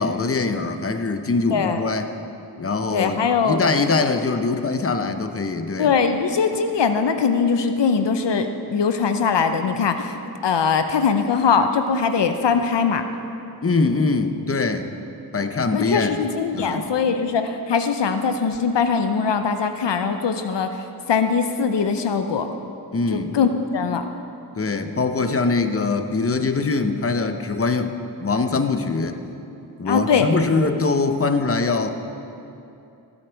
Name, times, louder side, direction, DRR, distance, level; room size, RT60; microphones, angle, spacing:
voice 1, 0.0-2.1 2.6-5.9 13.6-14.9 15.3-16.2 16.5-16.9 22.9-23.4 24.6-29.2 29.8-31.9, left 3 dB, 30° left, 8 dB, 0.8 m, -23 dB
voice 2, 1.5-1.8 2.9-3.6 5.8-13.0 15.7-20.8 21.1-22.5 23.1-24.0 29.9-30.3, left 5 dB, 75° left, 8 dB, 0.7 m, -21 dB
18.5 x 8.1 x 4.6 m, 2.7 s
cardioid pair, 55°, 42 cm